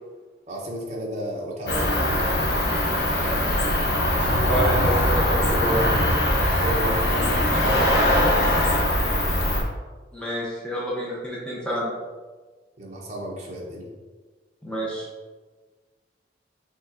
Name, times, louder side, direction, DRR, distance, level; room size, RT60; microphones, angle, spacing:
voice 1, 0.5-1.9 6.3-8.3 12.8-13.9, equal, 40° right, -2 dB, 0.8 m, -33 dB
Cricket, 1.7-9.6, left 1 dB, 70° left, 0.9 m, -21 dB
voice 2, 4.5-5.8 10.1-11.9 14.6-15.1, equal, 5° left, -6 dB, 0.8 m, -28 dB
5.8 x 3.3 x 2.6 m, 1.4 s
head